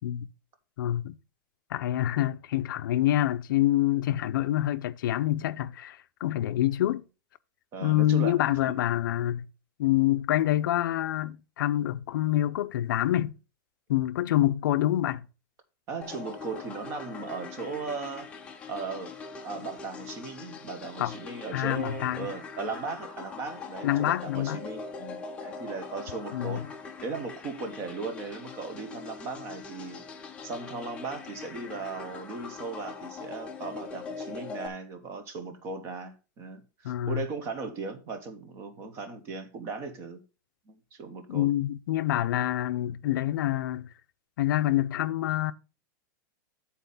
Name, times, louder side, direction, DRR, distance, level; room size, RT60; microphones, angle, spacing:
voice 1, 0.8-1.2 1.7-7.0 7.8-9.5 9.8-13.3 13.9-15.2 21.0-21.1 21.5-22.3 23.8-24.6 26.3-26.6 36.8-37.2 41.3-43.9 44.4-45.5, left 13 dB, 85° left, 0.5 m, -26 dB
voice 2, 7.7-8.8 15.9-18.4 18.7-19.2 19.4-26.7 27.0-30.0 30.4-40.2 40.7-41.5, right 4 dB, 25° right, 1.0 m, -37 dB
sound 1, 16.0-34.7, left 5 dB, 10° left, 0.6 m, -42 dB
9.3 x 4.2 x 5.5 m
supercardioid pair, 180°, 11 cm